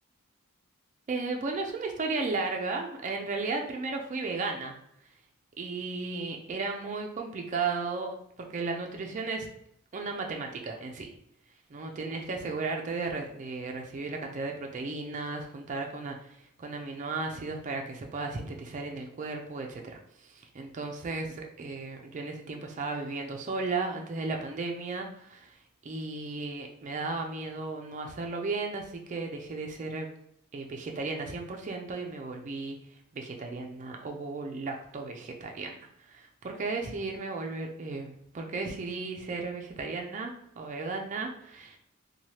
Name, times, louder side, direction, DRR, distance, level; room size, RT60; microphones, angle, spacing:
voice 1, 1.1-4.7 5.6-8.1 8.5-9.5 9.9-11.1 11.7-16.2 16.6-20.0 20.3-25.5 25.8-30.1 30.5-32.8 33.1-35.8 36.1-41.8, right 3 dB, 35° right, 2 dB, 0.4 m, -35 dB
3.1 x 2.2 x 2.8 m, 0.74 s
head